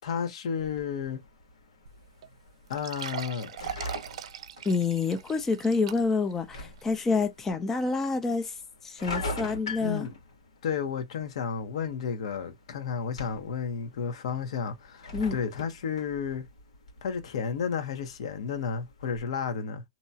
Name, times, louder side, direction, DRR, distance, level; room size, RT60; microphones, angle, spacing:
voice 1, 0.0-1.2 2.7-3.5 9.8-10.1 10.6-16.5 17.0-19.8, left 6 dB, 65° left, 0.9 m, -32 dB
sound 1, 0.6-19.2, left 2 dB, 90° left, 1.6 m, -44 dB
sound 2, 1.9-2.0 2.2-2.3 2.7-6.3 6.8-6.9 7.5-7.6, right 9 dB, 70° right, 0.5 m, -40 dB
voice 2, 4.7-8.5 8.8-10.0 15.1-15.4, left 4 dB, 10° left, 0.4 m, -27 dB
2.8 x 2.3 x 2.7 m
hypercardioid pair, 140°, 3 cm